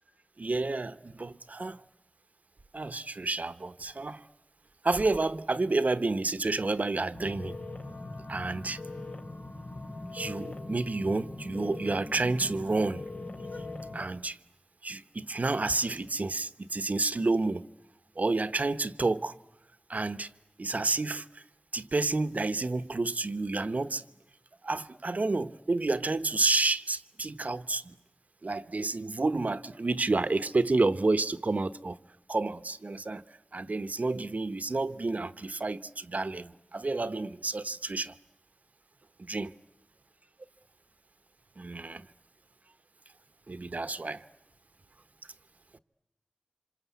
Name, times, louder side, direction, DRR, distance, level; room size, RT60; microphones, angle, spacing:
voice 1, 0.4-1.8 2.7-4.2 4.8-7.5 8.3-8.8 10.1-13.0 13.9-14.4 14.8-17.7 18.2-19.3 19.9-20.3 20.6-21.4 21.7-24.0 24.6-27.9 28.4-32.0 32.3-33.2 33.5-38.1 39.2-39.5 41.6-42.1 43.5-44.3, right 3 dB, 65° right, 1.0 m, -30 dB
sound 1, 7.1-14.0, left 2 dB, 80° left, 3.4 m, -41 dB
27.0 x 26.5 x 8.3 m
wide cardioid pair, 40°, 3 cm